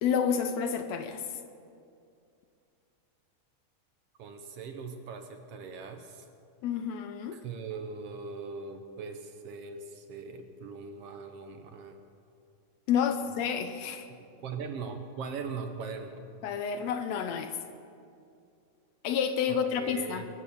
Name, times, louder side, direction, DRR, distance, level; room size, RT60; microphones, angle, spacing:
voice 1, 0.0-1.2 6.6-7.4 12.9-14.1 16.4-17.6 19.0-20.2, left 7 dB, 75° left, 8 dB, 1.7 m, -29 dB
voice 2, 4.2-6.3 7.3-12.0 13.2-13.3 14.1-16.2 19.5-20.3, right 5 dB, 70° right, 6 dB, 1.5 m, -40 dB
23.5 x 8.5 x 7.1 m, 2.5 s
omnidirectional pair, 3.7 m